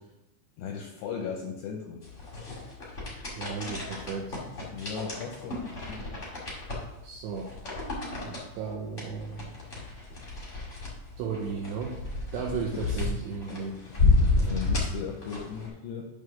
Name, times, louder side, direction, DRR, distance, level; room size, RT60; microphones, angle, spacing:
voice 1, 0.6-2.0 4.7-6.0 12.7-13.1 13.5-16.1, left 6 dB, 85° left, 1 dB, 2.4 m, -38 dB
sound 1, 2.0-15.7, left 3 dB, 70° left, 0.7 m, -31 dB
voice 2, 3.4-4.4 7.0-7.5 8.2-9.5 11.2-12.0 12.3-13.8 14.4-14.7, right 5 dB, 85° right, -1 dB, 2.4 m, -35 dB
8.9 x 3.3 x 6.3 m, 0.92 s
omnidirectional pair, 5.8 m